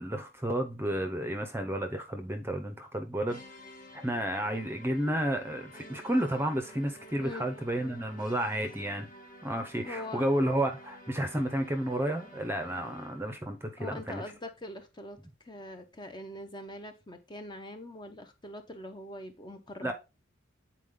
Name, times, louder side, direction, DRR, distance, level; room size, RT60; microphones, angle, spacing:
voice 1, 0.0-3.4 3.9-9.1 9.4-14.2 19.8-19.9, right 1 dB, 10° right, 0.7 m, -31 dB
sound 1, 3.3-13.4, equal, 40° left, 1.4 m, -51 dB
voice 2, 9.8-10.3 13.8-15.2 15.4-19.9, left 1 dB, 20° left, 0.8 m, -43 dB
8.2 x 4.4 x 3.7 m
head